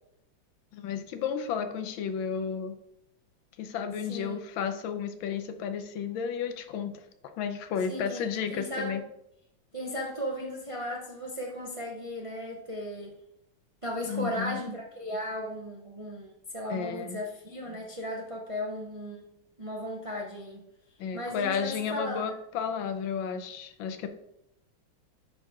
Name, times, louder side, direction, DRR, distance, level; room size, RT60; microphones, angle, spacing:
voice 1, 0.7-2.7 3.6-6.9 7.2-9.0 14.1-14.6 16.7-17.2 21.0-24.1, left 7 dB, 80° left, 9 dB, 1.4 m, -32 dB
voice 2, 7.9-9.0 9.7-13.1 13.8-19.3 19.6-20.6 21.1-22.4, equal, 55° right, -1 dB, 0.3 m, -36 dB
10.5 x 3.8 x 3.6 m, 0.79 s
omnidirectional pair, 2.2 m